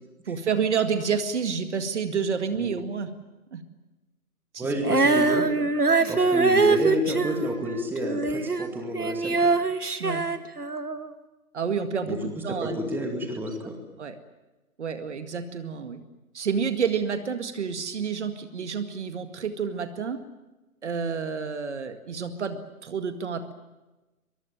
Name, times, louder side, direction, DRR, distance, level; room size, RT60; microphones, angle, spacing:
voice 1, 0.3-3.1 3.5-3.6 4.5-4.9 6.0-6.1 10.0-10.3 11.5-12.8 14.0-14.2 14.8-16.0 16.3-20.2 20.8-23.5, right 6 dB, 50° right, 8 dB, 2.1 m, -29 dB
voice 2, 4.6-5.4 6.1-9.5 12.1-12.2 12.6-13.7, left 1 dB, 5° right, 3 dB, 2.3 m, -29 dB
Female singing, 4.8-8.7 8.9-11.1, right 3 dB, 85° right, 1.9 m, -23 dB
23.5 x 22.0 x 9.1 m, 1.1 s
figure-of-eight pair, 135°, 44 cm